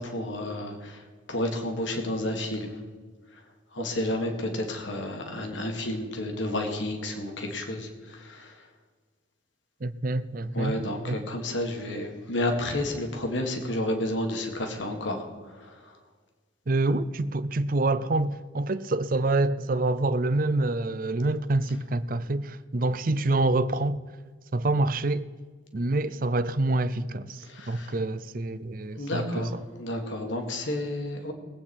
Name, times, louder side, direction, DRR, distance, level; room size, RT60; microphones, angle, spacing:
voice 1, 0.0-2.8 3.3-3.4 3.7-8.7 10.5-16.0 27.4-28.0 29.0-31.3, left 1 dB, 70° left, 2.0 m, -31 dB
voice 2, 9.8-11.2 16.7-24.0 24.5-25.3 25.7-29.5, right 2 dB, 45° right, 0.5 m, -27 dB
21.5 x 8.6 x 4.4 m
head